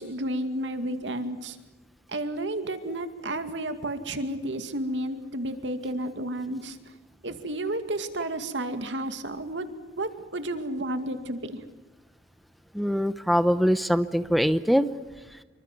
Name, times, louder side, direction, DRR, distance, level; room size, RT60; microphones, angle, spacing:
voice 1, 0.0-1.6 2.1-6.8 7.2-9.7 10.0-11.6, right 1 dB, 90° right, 8 dB, 2.3 m, -31 dB
voice 2, 0.9-1.2 12.7-14.9, equal, ahead, 12 dB, 0.8 m, -23 dB
26.5 x 24.5 x 6.1 m, 1.2 s
head